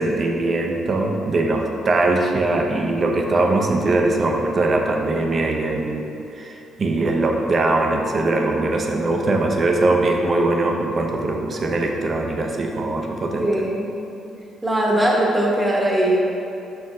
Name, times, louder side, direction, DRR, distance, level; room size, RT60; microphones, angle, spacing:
voice 1, 0.0-6.0 6.3-13.5, right 2 dB, 45° right, 2 dB, 0.7 m, -21 dB
voice 2, 13.4-14.0 14.6-16.2, right 1 dB, 10° right, -3 dB, 1.2 m, -20 dB
5.7 x 4.7 x 3.6 m, 2.8 s
cardioid pair, 90°, 0 cm